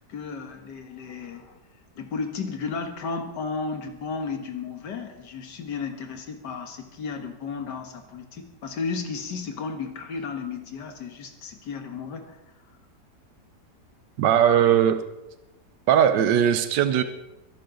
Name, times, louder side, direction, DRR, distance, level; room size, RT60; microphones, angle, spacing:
voice 1, 0.0-1.6 2.0-12.4 14.4-14.6, left 5 dB, 90° left, 5 dB, 2.0 m, -34 dB
voice 2, 14.2-15.0 15.9-17.0, right 9 dB, 90° right, 9 dB, 1.4 m, -19 dB
23.0 x 11.5 x 3.9 m, 0.96 s
omnidirectional pair, 1.8 m